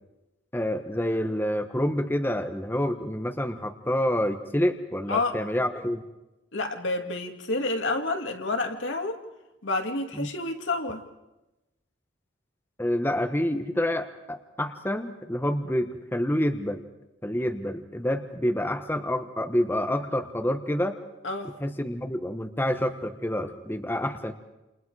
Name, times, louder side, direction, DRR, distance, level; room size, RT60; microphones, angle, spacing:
voice 1, 0.5-6.0 10.1-10.3 12.8-16.8 17.2-21.0 21.6-24.3, left 1 dB, 10° left, 6 dB, 1.1 m, -28 dB
voice 2, 6.5-9.2 9.6-11.0 21.2-21.5, left 2 dB, 80° left, 4 dB, 2.2 m, -29 dB
29.0 x 28.0 x 4.8 m, 0.98 s
head